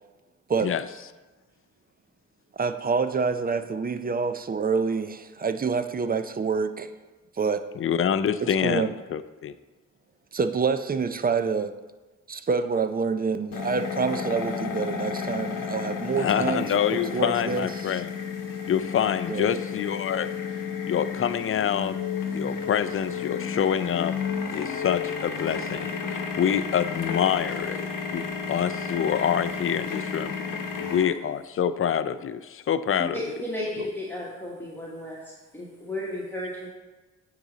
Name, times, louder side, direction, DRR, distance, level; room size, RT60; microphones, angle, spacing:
voice 1, 2.5-6.9 7.4-7.6 8.6-8.9 10.3-11.7 12.3-18.0 19.3-19.6, right 5 dB, 30° right, 10 dB, 0.4 m, -27 dB
voice 2, 7.8-9.5 16.2-18.1 18.7-20.3 20.9-22.0 22.3-24.2 24.5-27.9 28.1-30.4 30.9-33.2, left 8 dB, 45° left, 13 dB, 0.4 m, -26 dB
sound 1, 13.5-31.0, left 6 dB, 80° left, 1.0 m, -32 dB
voice 3, 33.1-36.7, left 1 dB, 5° left, -5 dB, 1.2 m, -34 dB
9.2 x 4.1 x 3.9 m, 1.2 s
cardioid pair, 70°, 32 cm